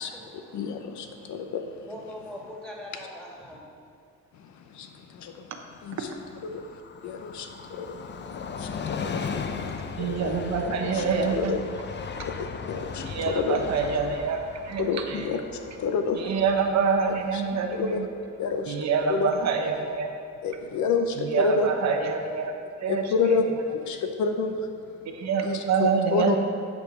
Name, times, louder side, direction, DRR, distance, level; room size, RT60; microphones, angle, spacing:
voice 1, 0.0-1.5 1.9-3.6, left 1 dB, ahead, -4 dB, 2.1 m, -43 dB
voice 2, 0.5-1.9 4.3-5.5 5.8-6.1 6.4-11.1 11.4-11.6 12.2-13.6 14.8-16.3 17.3-17.4 17.7-18.1 18.4-19.3 20.4-21.7 22.9-26.4, left 5 dB, 70° left, 6 dB, 0.7 m, -30 dB
Train, 5.7-19.0 19.4-19.5, left 5 dB, 35° left, 0.6 m, -38 dB
voice 3, 10.0-11.5 13.1-15.2 16.2-18.1 18.7-20.1 21.2-22.5 22.8-23.3 25.1-26.4, right 5 dB, 60° right, 4 dB, 0.9 m, -26 dB
9.5 x 5.3 x 4.8 m, 2.3 s
cardioid pair, 90°, 30 cm